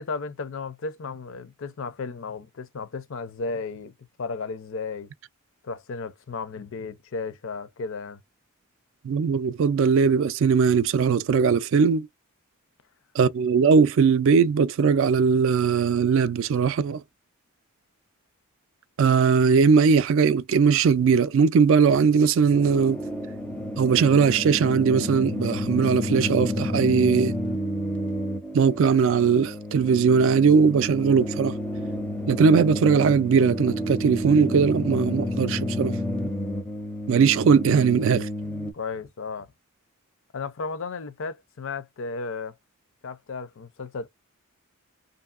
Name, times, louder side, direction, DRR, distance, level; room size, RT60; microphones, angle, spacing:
voice 1, 0.0-3.9 4.2-5.1 5.6-8.2 38.7-39.5 40.3-42.5 43.0-44.1, left 4 dB, 60° left, 0.5 m, -34 dB
voice 2, 9.0-12.1 13.2-17.0 19.0-23.0 23.8-27.4 28.5-31.6 32.3-35.9 37.1-38.3, right 6 dB, 60° right, 0.3 m, -20 dB
sound 1, 22.5-38.7, left 1 dB, 5° left, 0.4 m, -30 dB
2.7 x 2.6 x 2.4 m
head